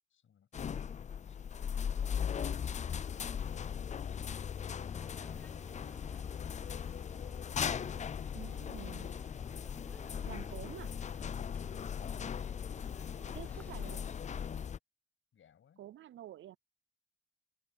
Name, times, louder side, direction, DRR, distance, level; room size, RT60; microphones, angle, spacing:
voice 1, 0.1-0.9 15.3-15.8, left 8 dB, 85° left, 7.9 m, -66 dB
sound 1, 0.5-14.8, left 7 dB, 35° left, 0.4 m, -38 dB
sound 2, 4.9-14.1, left 1 dB, 5° left, 0.9 m, -55 dB
voice 2, 8.3-9.1 10.3-10.9 13.3-14.0 15.8-16.6, right 12 dB, 75° right, 0.4 m, -48 dB
wide cardioid pair, 135°, 20 cm